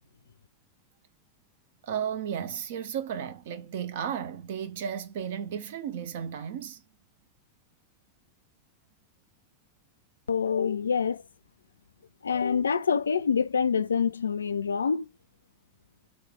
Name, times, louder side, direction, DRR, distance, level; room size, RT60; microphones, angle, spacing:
voice 1, 1.8-6.8, right 8 dB, 55° right, 0.7 m, -34 dB
voice 2, 10.3-11.2 12.2-15.1, left 6 dB, 70° left, 0.4 m, -26 dB
3.8 x 3.2 x 3.6 m
figure-of-eight pair, 90°, 0 cm